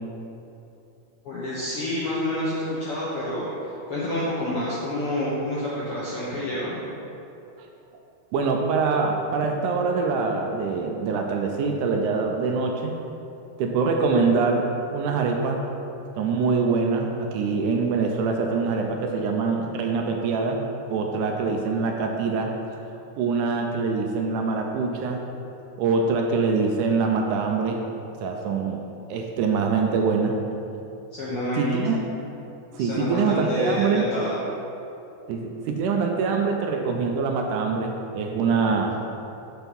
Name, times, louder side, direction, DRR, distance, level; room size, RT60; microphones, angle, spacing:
voice 1, 1.2-6.8 28.5-28.6 31.1-31.8 32.8-34.4, left 1 dB, 70° left, -7 dB, 1.4 m, -28 dB
voice 2, 8.3-13.0 13.6-15.6 16.2-20.6 20.9-22.5 23.2-25.2 25.8-27.8 28.2-28.8 29.1-30.4 31.6-32.0 32.8-34.1 35.3-39.0, right 4 dB, 80° right, 2 dB, 2.0 m, -24 dB
6.1 x 5.6 x 5.3 m, 2.9 s
omnidirectional pair, 3.8 m